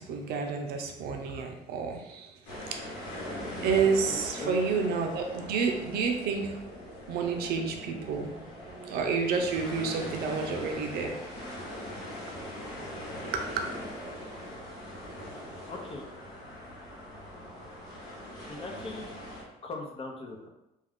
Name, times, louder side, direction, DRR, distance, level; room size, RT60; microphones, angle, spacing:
voice 1, 0.0-2.4 2.7-2.8 3.6-6.6 7.1-11.1 13.3-13.6, right 5 dB, 75° right, 3 dB, 0.5 m, -30 dB
sound 1, 2.5-19.4, left 1 dB, 80° left, 1.1 m, -41 dB
voice 2, 4.0-4.5 15.3-16.1 18.5-19.1 19.6-20.5, left 2 dB, 35° left, 1 dB, 0.7 m, -40 dB
2.4 x 2.3 x 3.5 m, 0.90 s
supercardioid pair, 80°, 16 cm